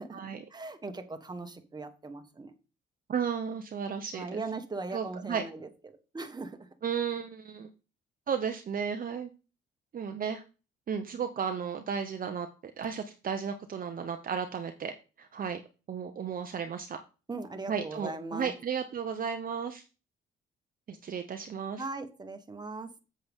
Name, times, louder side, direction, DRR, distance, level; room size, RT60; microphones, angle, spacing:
voice 1, 0.0-2.5 4.1-6.7 17.3-18.5 21.8-22.9, right 3 dB, 20° right, 7 dB, 1.4 m, -39 dB
voice 2, 3.1-4.4 4.9-5.4 6.8-7.7 8.3-9.3 9.9-10.4 10.9-12.5 12.8-15.6 15.9-17.0 17.7-19.8 20.9-21.8, right 7 dB, 45° right, 6 dB, 0.8 m, -34 dB
7.7 x 7.7 x 3.6 m, 0.33 s
cardioid pair, 90°, 20 cm